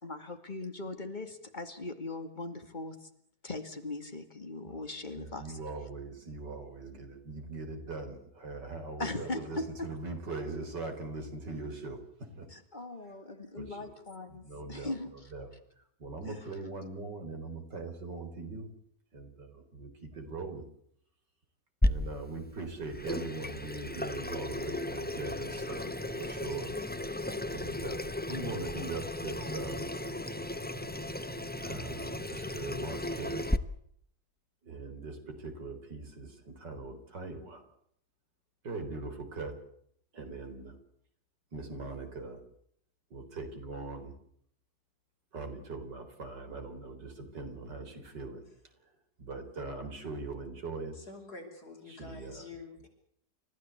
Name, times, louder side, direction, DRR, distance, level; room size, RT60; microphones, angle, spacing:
voice 1, 0.0-3.0 3.4-5.5 9.0-9.6 12.5-15.1 16.2-16.3, left 2 dB, 25° left, 7 dB, 2.5 m, -39 dB
voice 2, 4.6-12.5 13.6-14.0 14.3-18.7 19.1-20.6 21.8-26.7 27.5-29.9 31.6-33.5 34.6-37.6 38.6-39.6 40.1-40.8 41.5-42.4 43.1-44.1 45.3-48.4 48.8-48.9 49.2-51.0 51.8-52.5, right 3 dB, 90° right, 7 dB, 4.7 m, -41 dB
Water tap faucet / Sink (filling or washing), 21.8-33.6, left 1 dB, 10° left, 0.6 m, -35 dB
voice 3, 50.9-52.9, left 3 dB, 65° left, 2 dB, 6.3 m, -47 dB
29.5 x 15.0 x 8.2 m, 0.70 s
omnidirectional pair, 1.8 m